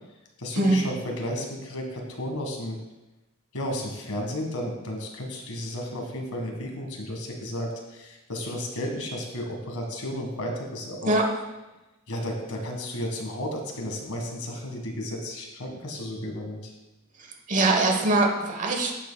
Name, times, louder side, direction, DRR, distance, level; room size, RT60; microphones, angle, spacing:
voice 1, 0.4-2.8 3.5-11.1 12.1-16.7, left 1 dB, 90° left, 1 dB, 1.7 m, -33 dB
voice 2, 17.5-18.9, right 2 dB, 35° right, 3 dB, 1.0 m, -22 dB
10.5 x 8.0 x 2.3 m, 1.0 s
head